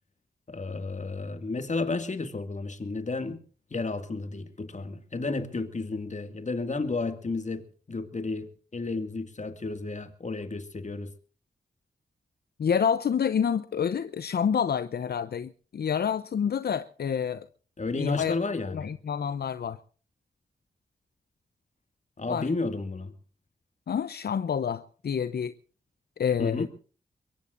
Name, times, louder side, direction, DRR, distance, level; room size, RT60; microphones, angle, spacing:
voice 1, 0.5-3.4 3.7-11.1 17.8-18.9 22.2-23.1 26.4-26.7, left 3 dB, 45° left, 2.2 m, -32 dB
voice 2, 12.6-17.4 18.0-18.4 18.7-19.8 22.3-22.5 23.9-25.5 26.2-26.7, left 7 dB, 75° left, 0.7 m, -28 dB
23.0 x 23.0 x 2.6 m
cardioid pair, 55°, 17 cm